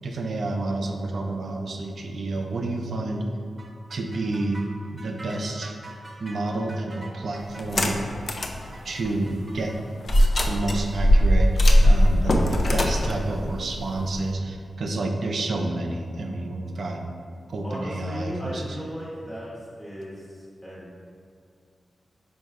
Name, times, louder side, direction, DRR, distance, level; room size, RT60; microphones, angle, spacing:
voice 1, 0.0-3.2 3.9-4.6 4.9-5.7 6.2-8.1 8.8-9.7 10.5-17.0 17.5-18.6, right 2 dB, 70° right, 2 dB, 0.4 m, -29 dB
sound 1, 3.6-12.1, right 2 dB, 35° right, 0.8 m, -46 dB
sound 2, 7.6-8.6 9.0-9.1 10.1-14.3, equal, 55° left, 0.4 m, -19 dB
voice 2, 17.6-19.5 19.8-21.0, equal, 10° left, -8 dB, 1.0 m, -36 dB
4.4 x 2.3 x 4.6 m, 2.3 s
cardioid pair, 55°, 0 cm